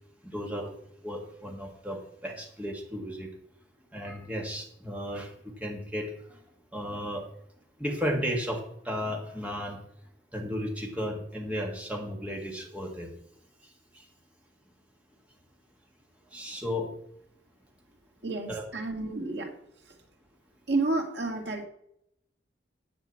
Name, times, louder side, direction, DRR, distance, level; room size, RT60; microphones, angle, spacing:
voice 1, 0.2-3.3 3.9-6.4 6.7-7.3 7.8-9.8 10.3-13.1 13.6-14.1 16.3-16.9 18.5-18.6, equal, 10° right, 1 dB, 1.6 m, -34 dB
voice 2, 18.2-19.5 19.8-20.0 20.7-21.6, right 3 dB, 75° right, 1 dB, 2.1 m, -30 dB
10.5 x 5.1 x 7.4 m, 0.74 s
head